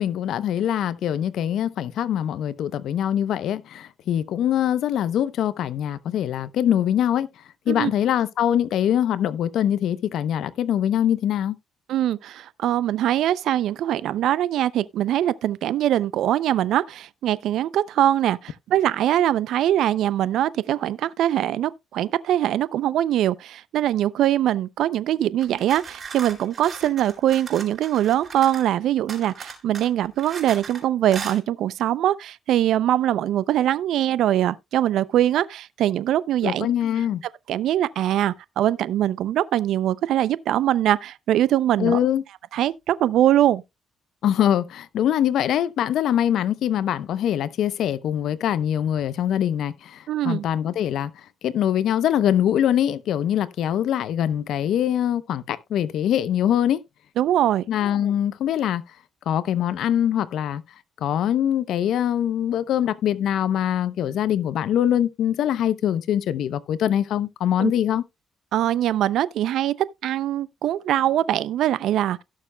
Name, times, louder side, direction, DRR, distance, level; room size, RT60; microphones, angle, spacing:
voice 1, 0.0-7.3 7.7-11.5 36.4-37.2 41.8-42.2 44.2-51.1 51.4-56.8 57.7-58.8 59.3-60.6 61.0-68.0, left 10 dB, 75° left, 0.7 m, -23 dB
voice 2, 11.9-36.7 37.5-42.0 42.5-43.6 50.1-50.4 57.2-57.6 67.6-67.7 68.5-69.7 70.0-72.2, right 12 dB, 80° right, 0.4 m, -22 dB
sound 1, 25.4-28.7 29.1-30.8 31.1-31.4, right 5 dB, 45° right, 4.1 m, -38 dB
17.0 x 6.6 x 2.2 m
cardioid pair, 90°, 0 cm